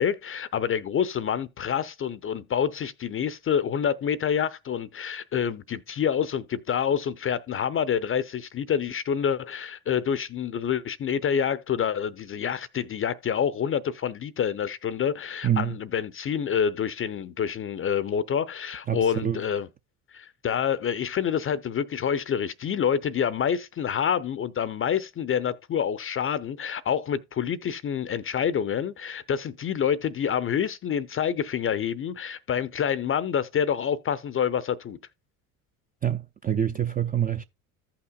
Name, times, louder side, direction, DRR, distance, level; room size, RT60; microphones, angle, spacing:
voice 1, 0.0-19.7 20.1-35.0, left 8 dB, 30° left, 0.5 m, -27 dB
voice 2, 15.4-15.7 18.9-19.4 36.0-37.4, right 9 dB, 20° right, 0.4 m, -26 dB
14.5 x 5.8 x 2.3 m
hypercardioid pair, 65°, 44 cm